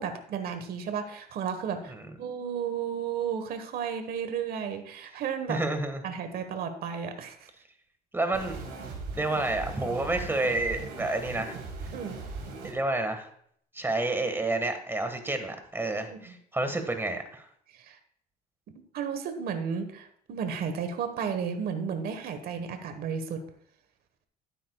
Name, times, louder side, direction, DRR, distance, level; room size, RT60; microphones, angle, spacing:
voice 1, 0.0-1.9 2.2-5.6 6.0-7.5 11.9-12.2 16.1-16.3 17.7-18.0 18.9-23.4, right 7 dB, 65° right, 7 dB, 1.3 m, -33 dB
voice 2, 5.5-6.0 8.1-8.6 9.2-11.6 12.6-13.3 13.7-17.4, right 2 dB, 15° right, 7 dB, 1.6 m, -29 dB
sound 1, 8.3-12.7, right 3 dB, 80° right, 3.8 m, -39 dB
12.5 x 9.3 x 2.3 m, 0.64 s
cardioid pair, 110°, 17 cm